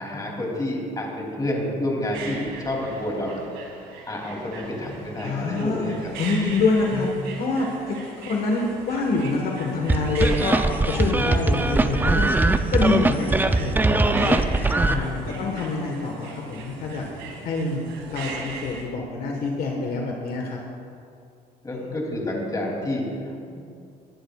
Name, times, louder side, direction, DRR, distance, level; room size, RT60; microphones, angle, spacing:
voice 1, 0.0-3.4 4.1-6.1 6.9-7.1 10.3-10.5 15.1-15.7 21.6-23.6, left 1 dB, 20° left, -1 dB, 3.0 m, -29 dB
sound 1, 2.0-18.8, right 3 dB, 90° right, 2.4 m, -40 dB
voice 2, 5.2-7.1 7.4-10.6 10.9-12.3 12.7-14.4 14.8-17.1 17.4-20.6 21.7-22.0, left 3 dB, 60° left, 0 dB, 1.5 m, -26 dB
sound 2, 9.9-14.9, right 2 dB, 10° right, 0.5 m, -21 dB
20.0 x 11.5 x 2.4 m, 2.4 s
cardioid pair, 110°, 17 cm